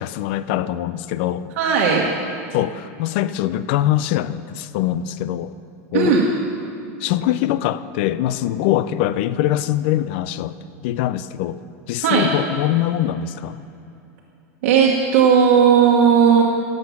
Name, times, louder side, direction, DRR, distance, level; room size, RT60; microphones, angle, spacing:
voice 1, 0.0-1.5 2.5-5.5 5.9-6.2 7.0-10.6 10.8-11.6 11.9-13.6, left 13 dB, 45° left, 14 dB, 0.4 m, -23 dB
voice 2, 1.6-2.0 5.9-6.3 12.0-12.3 14.6-16.4, right 6 dB, 55° right, -2 dB, 1.3 m, -15 dB
17.5 x 7.8 x 5.9 m, 2.7 s
supercardioid pair, 175°, 8 cm